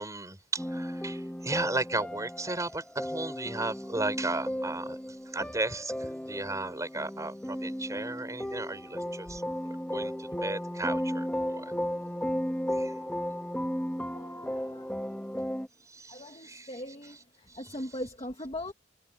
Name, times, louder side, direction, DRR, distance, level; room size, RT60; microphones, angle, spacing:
voice 1, 0.0-9.4 9.9-11.7 12.7-12.9 15.9-16.7 17.5-17.6, right 2 dB, 20° right, 6.1 m, -35 dB
sound 1, 0.6-15.7, equal, 5° left, 2.0 m, -35 dB
voice 2, 14.0-15.0 16.1-18.7, left 1 dB, 30° left, 2.3 m, -40 dB
head